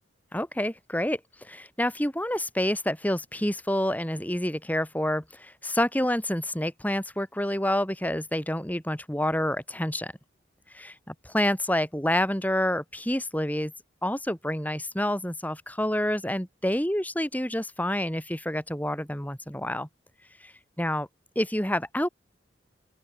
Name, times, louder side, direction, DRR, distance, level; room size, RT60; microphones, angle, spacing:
voice 1, 0.3-10.1 10.7-13.7 14.0-19.9 20.4-20.5 20.8-21.1 21.4-22.1, left 1 dB, 10° left, 5.7 m, -28 dB
open air
head